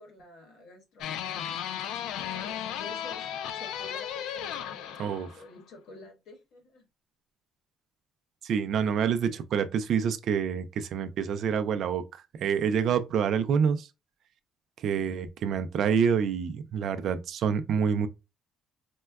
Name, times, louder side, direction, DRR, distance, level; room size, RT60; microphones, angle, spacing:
voice 1, 0.0-1.6 2.3-3.3 3.5-6.9, left 2 dB, 65° left, 1.4 m, -50 dB
sound 1, 1.0-5.5, left 9 dB, 85° left, 0.3 m, -35 dB
voice 2, 8.4-13.9 14.8-18.1, right 7 dB, 55° right, 0.4 m, -27 dB
4.3 x 2.2 x 2.2 m
cardioid pair, 155°, 0 cm